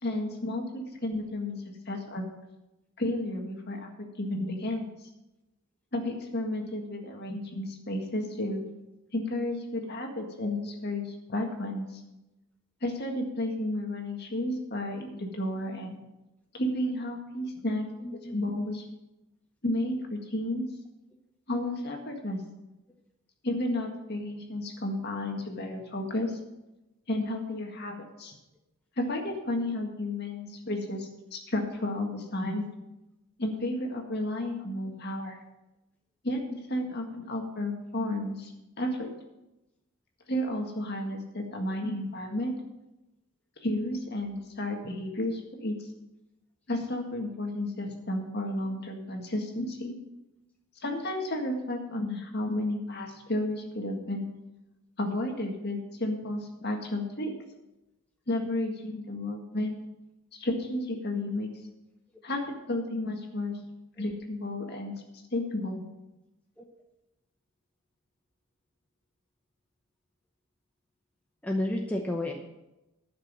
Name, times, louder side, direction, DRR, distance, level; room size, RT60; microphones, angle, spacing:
voice 1, 0.0-2.2 3.0-3.9 4.2-4.9 5.9-8.6 9.1-12.0 12.8-16.0 16.5-17.9 18.3-18.8 19.6-20.6 21.5-22.4 23.4-26.4 27.1-28.4 29.0-32.6 33.4-35.4 36.2-36.4 36.7-38.5 38.8-39.1 40.3-42.5 43.6-45.7 46.7-49.9 50.8-54.2 55.0-57.3 58.3-59.8 60.3-61.5 62.2-63.6 64.0-64.9 65.3-65.8, left 1 dB, 45° left, 2 dB, 1.8 m, -32 dB
voice 2, 18.0-18.4 64.0-64.1 66.6-66.7 71.4-72.3, left 1 dB, 5° left, 0 dB, 0.8 m, -31 dB
11.5 x 6.2 x 7.4 m, 0.96 s
head